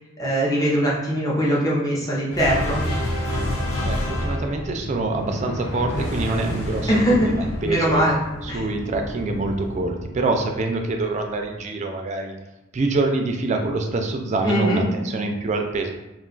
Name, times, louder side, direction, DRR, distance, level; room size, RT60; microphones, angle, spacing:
voice 1, 0.2-2.8 6.9-7.3 7.6-8.2 8.5-8.6 14.4-14.8, equal, 15° left, -6 dB, 0.6 m, -21 dB
sound 1, 2.3-10.9, left 1 dB, 65° left, 0.7 m, -29 dB
voice 2, 3.8-8.0 8.4-12.4 12.7-15.9, right 2 dB, 35° right, 3 dB, 0.3 m, -25 dB
2.4 x 2.3 x 3.7 m, 0.98 s
head